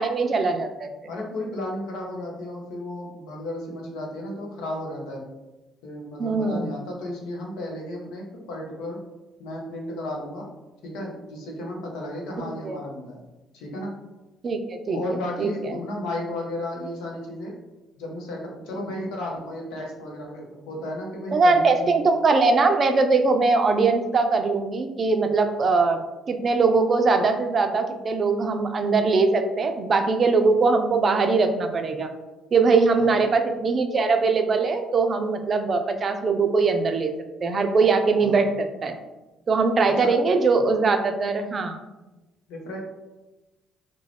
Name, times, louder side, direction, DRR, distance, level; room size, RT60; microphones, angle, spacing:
voice 1, 0.0-0.9 6.2-6.7 12.4-12.8 14.4-15.0 15.4-15.8 21.3-26.0 26.3-32.1 32.5-37.1 37.4-39.0 39.5-41.8, right 4 dB, 45° right, 6 dB, 0.4 m, -21 dB
voice 2, 1.1-5.2 5.8-9.0 9.4-10.5 10.8-13.2 13.5-13.9 14.9-17.5 18.0-21.9 33.0-33.2 38.2-38.4 39.8-40.1 42.5-42.8, left 1 dB, 80° left, -1 dB, 0.6 m, -34 dB
2.3 x 2.0 x 3.2 m, 1.1 s
hypercardioid pair, 55°, 0 cm